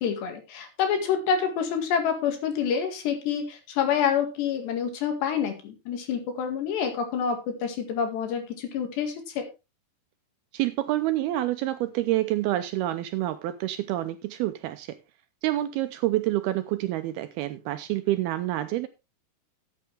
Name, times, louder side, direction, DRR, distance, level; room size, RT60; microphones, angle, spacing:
voice 1, 0.0-9.5, left 7 dB, 75° left, 4.2 m, -27 dB
voice 2, 10.5-15.0 15.4-18.9, right 15 dB, 80° right, 2.4 m, -27 dB
13.5 x 8.6 x 3.4 m
omnidirectional pair, 5.0 m